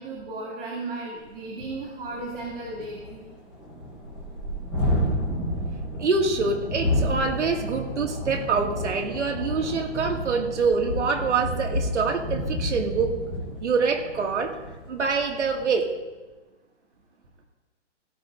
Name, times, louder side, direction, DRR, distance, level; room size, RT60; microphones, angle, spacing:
voice 1, 0.0-3.2, right 2 dB, 45° right, -3 dB, 2.6 m, -35 dB
Thunderstorm, 1.3-1.4 1.7-1.8 2.1-15.7, equal, 5° right, 0.8 m, -31 dB
voice 2, 6.0-13.2 13.6-14.5 14.9-15.9, right 4 dB, 75° right, 3 dB, 2.2 m, -25 dB
17.0 x 12.5 x 2.6 m, 1.2 s
hypercardioid pair, 175°, 36 cm